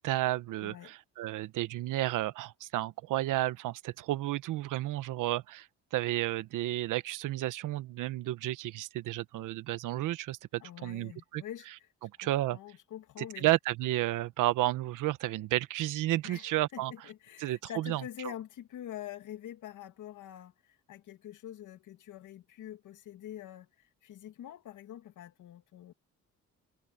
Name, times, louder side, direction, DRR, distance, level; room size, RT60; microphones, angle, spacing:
voice 1, 0.0-11.4 12.0-12.6 13.4-16.9 17.4-18.0, right 15 dB, 90° right, 1.2 m, -32 dB
voice 2, 0.6-0.9 10.6-11.9 12.2-13.5 16.2-25.9, left 11 dB, 80° left, 2.5 m, -46 dB
cardioid pair, 80°, 30 cm